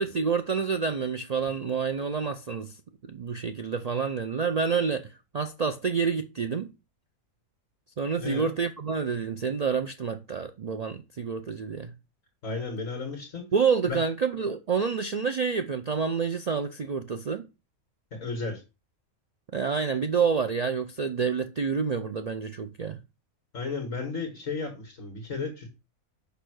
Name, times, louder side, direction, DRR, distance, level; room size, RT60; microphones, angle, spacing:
voice 1, 0.0-2.8 3.1-6.7 8.0-11.9 13.5-17.4 19.5-23.0, right 5 dB, 75° right, 0.3 m, -28 dB
voice 2, 8.2-8.5 12.4-13.5 13.9-14.0 18.1-18.6 23.5-25.7, left 4 dB, 60° left, 2.0 m, -33 dB
6.7 x 5.6 x 6.3 m
omnidirectional pair, 1.5 m